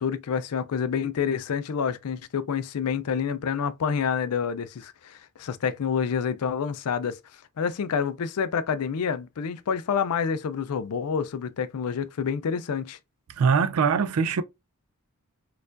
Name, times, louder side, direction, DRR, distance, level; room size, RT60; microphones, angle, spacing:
voice 1, 0.0-7.2 7.6-13.0, left 6 dB, 90° left, 0.4 m, -28 dB
voice 2, 13.4-14.4, right 5 dB, 75° right, 0.4 m, -22 dB
4.4 x 2.4 x 2.4 m
head